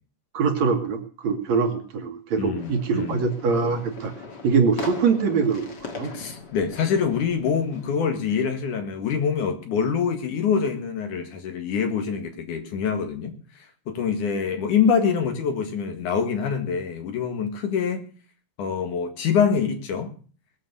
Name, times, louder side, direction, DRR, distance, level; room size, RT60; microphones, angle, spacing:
voice 1, 0.3-4.1 4.4-6.1, right 5 dB, 60° right, 2.6 m, -23 dB
voice 2, 2.4-3.2 6.1-18.1 18.6-20.1, left 6 dB, 70° left, 3.3 m, -25 dB
sound 1, 2.6-8.0, left 4 dB, 35° left, 2.1 m, -40 dB
20.0 x 7.4 x 6.9 m
omnidirectional pair, 3.8 m